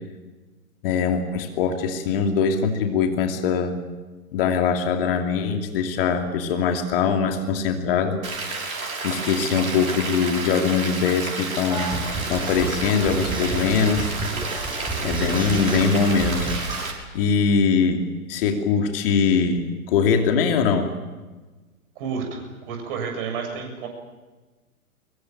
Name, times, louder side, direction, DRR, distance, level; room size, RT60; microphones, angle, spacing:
voice 1, 0.8-3.7 4.3-8.2 9.0-11.9 12.3-14.2 15.0-16.5 17.1-20.9, left 6 dB, 40° left, 5 dB, 2.8 m, -22 dB
Rain, 8.2-16.9, right 3 dB, 70° right, 6.2 m, -31 dB
sound 1, 11.7-16.8, right 2 dB, 10° right, 7.6 m, -30 dB
voice 2, 22.0-23.9, right 5 dB, 40° right, 3 dB, 7.2 m, -30 dB
24.0 x 22.5 x 8.9 m, 1.3 s
figure-of-eight pair, 115°, 43 cm